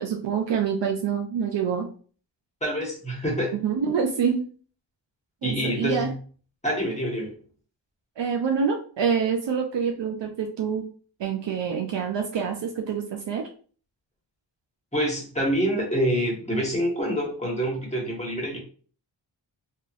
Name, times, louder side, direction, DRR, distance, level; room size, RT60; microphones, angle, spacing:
voice 1, 0.0-1.9 3.5-4.5 5.4-6.1 8.2-10.9 11.2-13.5, right 6 dB, 65° right, 2 dB, 0.5 m, -26 dB
voice 2, 2.6-3.6 5.4-6.1 6.6-7.3 14.9-18.6, equal, 15° left, -2 dB, 1.2 m, -26 dB
2.9 x 2.3 x 2.5 m, 0.42 s
wide cardioid pair, 70°, 46 cm